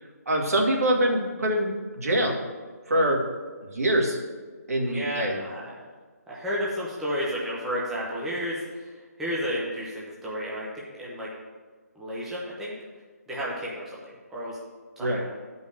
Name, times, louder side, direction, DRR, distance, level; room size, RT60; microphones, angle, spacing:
voice 1, 0.3-2.4 2.9-3.2 3.6-4.2 4.7-5.4 15.0-15.3, right 1 dB, 65° right, 0 dB, 2.1 m, -24 dB
voice 2, 4.8-5.7 6.3-8.9 9.2-11.3 11.9-12.7 13.3-14.6 15.0-15.4, equal, 5° right, -7 dB, 0.8 m, -32 dB
9.5 x 5.4 x 6.4 m, 1.5 s
hypercardioid pair, 170°, 9 cm